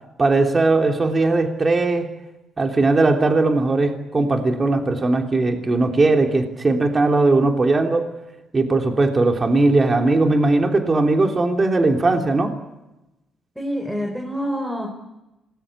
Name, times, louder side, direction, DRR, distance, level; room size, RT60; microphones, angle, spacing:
voice 1, 0.2-2.1 2.6-8.1 8.5-12.5, right 3 dB, 30° right, 3 dB, 3.3 m, -19 dB
voice 2, 13.5-14.9, equal, 5° right, 2 dB, 5.0 m, -26 dB
26.5 x 20.5 x 8.4 m, 0.96 s
cardioid pair, 90°, 0 cm